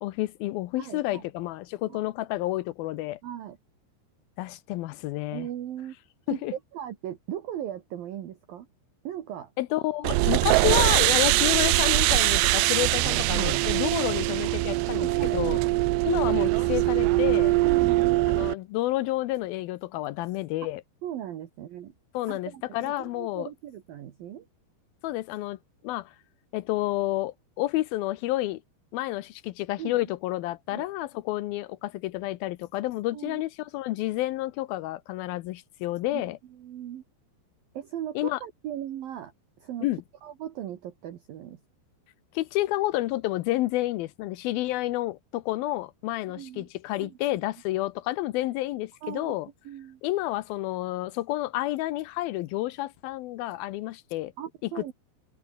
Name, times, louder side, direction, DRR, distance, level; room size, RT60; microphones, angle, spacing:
voice 1, 0.0-3.2 4.4-5.5 6.3-6.5 9.6-15.6 16.0-17.6 18.3-20.8 22.1-23.5 25.0-25.6 25.8-26.1 26.5-28.6 28.9-36.4 38.2-38.4 39.8-40.0 42.3-49.5 50.0-54.3 54.7-54.9, left 17 dB, 85° left, 2.1 m, -30 dB
voice 2, 0.8-1.2 1.9-2.0 3.2-3.6 5.3-6.0 6.3-8.7 9.0-9.5 13.0-13.6 14.9-15.7 17.6-18.2 21.0-21.9 22.3-24.5 29.8-30.0 30.7-30.8 33.1-33.4 36.1-36.2 36.5-37.0 37.7-39.3 39.6-39.9 40.2-41.6 46.3-46.7 47.0-47.4 49.0-49.3 49.6-50.0 54.4-54.9, right 11 dB, 60° right, 3.0 m, -38 dB
sound 1, 10.0-18.5, right 19 dB, 80° right, 2.7 m, -22 dB
omnidirectional pair, 5.3 m